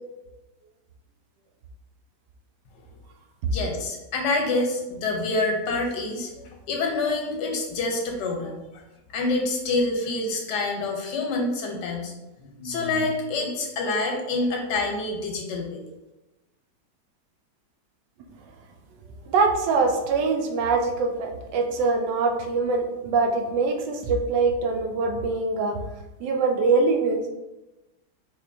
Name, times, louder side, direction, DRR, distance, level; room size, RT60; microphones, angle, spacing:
voice 1, 3.5-6.3 6.7-8.8 9.1-12.1 12.4-15.8, left 2 dB, 80° left, 1 dB, 1.3 m, -27 dB
voice 2, 19.3-25.8 26.2-27.2, right 4 dB, 85° right, 3 dB, 1.2 m, -23 dB
4.1 x 2.9 x 2.6 m, 1.0 s
omnidirectional pair, 1.9 m